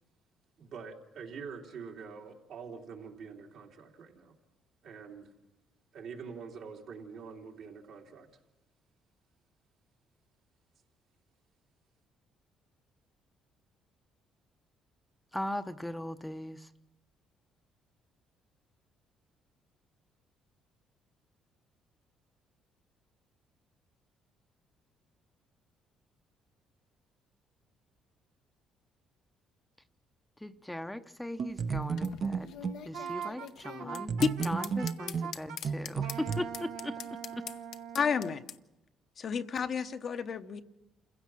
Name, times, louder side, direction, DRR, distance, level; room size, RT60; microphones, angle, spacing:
voice 1, 0.6-4.3 4.8-5.3 5.9-8.3, right 5 dB, 70° right, -1 dB, 3.1 m, -45 dB
voice 2, 15.3-16.7 30.4-34.2 34.4-37.0 37.3-37.4, left 1 dB, 5° left, 9 dB, 0.8 m, -39 dB
sound 1, 31.4-32.9 34.1-36.4, right 6 dB, 50° right, 0.9 m, -33 dB
sound 2, 31.5-38.6, left 9 dB, 75° left, 0.8 m, -44 dB
Wind instrument woodwind instrument, 32.9-35.6 36.0-38.4, right 8 dB, 90° right, 1.5 m, -42 dB
voice 3, 37.9-38.4 39.2-40.6, left 6 dB, 50° left, 8 dB, 0.9 m, -30 dB
27.5 x 16.0 x 6.3 m, 1.0 s
cardioid pair, 85°, 0 cm